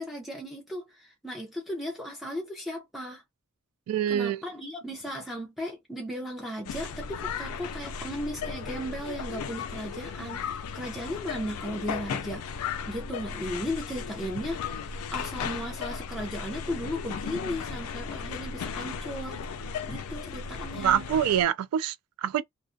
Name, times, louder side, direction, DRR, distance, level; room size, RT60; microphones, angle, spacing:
voice 1, 0.0-3.2 4.1-21.1, equal, ahead, 0.6 m, -36 dB
voice 2, 3.9-4.4 20.7-22.4, right 9 dB, 90° right, 0.3 m, -26 dB
sound 1, 6.6-21.5, left 6 dB, 90° left, 0.3 m, -36 dB
2.3 x 2.1 x 2.5 m
head